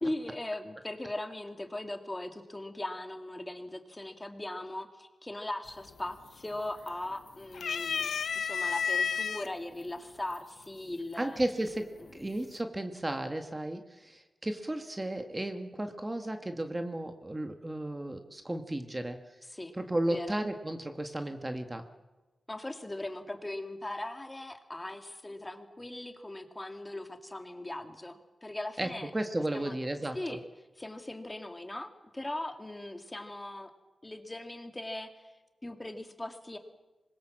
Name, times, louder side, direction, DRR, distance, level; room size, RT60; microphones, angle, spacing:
voice 1, 0.0-8.1 8.4-11.4 12.0-12.1 19.5-19.7 20.1-20.4 22.5-29.1 29.5-29.8 30.1-30.4 30.8-33.7 34.0-35.3 35.6-36.6, left 1 dB, 15° left, 6 dB, 2.4 m, -39 dB
sound 1, 5.7-6.1 6.4-7.1 7.5-9.5 10.3-10.4 11.7-12.1, left 6 dB, 80° left, 0.9 m, -31 dB
voice 2, 11.2-19.2 19.7-21.8 28.8-30.4, right 1 dB, 20° right, 6 dB, 1.6 m, -34 dB
26.0 x 21.5 x 7.6 m, 1.2 s
wide cardioid pair, 95°, 0 cm